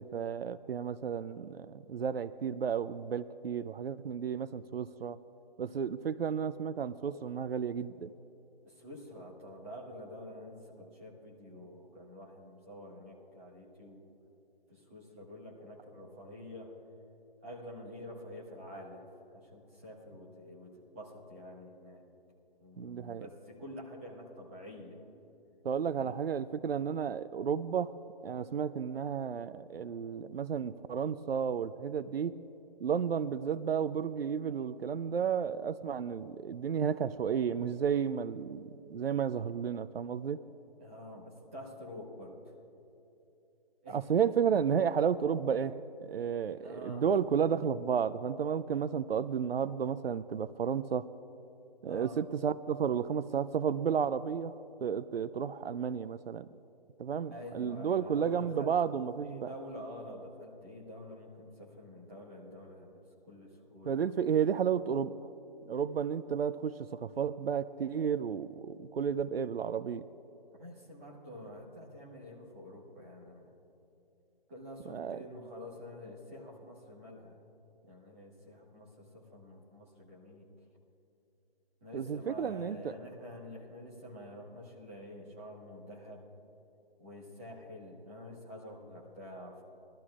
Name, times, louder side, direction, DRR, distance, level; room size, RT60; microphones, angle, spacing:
voice 1, 0.0-5.2 5.6-8.1 22.8-23.3 25.6-27.9 28.2-32.3 32.8-40.4 43.9-45.8 46.0-51.0 51.8-54.5 54.8-56.5 57.0-59.5 63.9-65.3 65.7-70.1 74.9-75.2 81.9-82.9, right 7 dB, 85° right, 14 dB, 0.5 m, -32 dB
voice 2, 8.6-14.0 14.7-16.7 17.4-19.0 19.3-22.0 22.6-25.0 25.9-26.1 40.8-42.5 43.8-44.0 46.6-47.1 51.8-52.2 57.3-58.7 59.2-64.1 70.6-73.5 74.5-77.4 77.8-80.4 81.8-86.2 87.0-89.6, equal, 15° right, -5 dB, 1.5 m, -48 dB
22.0 x 13.0 x 2.4 m, 2.9 s
hypercardioid pair, 175°, 29 cm